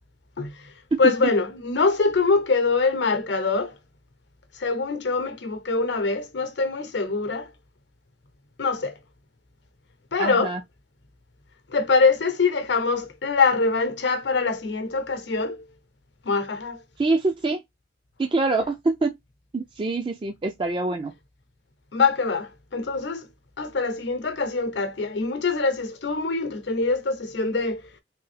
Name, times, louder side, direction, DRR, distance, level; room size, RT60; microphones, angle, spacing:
voice 1, 0.4-0.7 1.0-3.8 4.5-7.5 8.6-9.0 10.1-10.5 11.7-15.6 16.2-16.8 21.9-23.3 23.6-27.8, left 4 dB, 75° left, 0.8 m, -24 dB
voice 2, 10.2-10.6 17.0-17.6 18.2-19.2 19.5-21.1, right 3 dB, 30° right, 0.4 m, -25 dB
3.4 x 2.6 x 3.3 m
head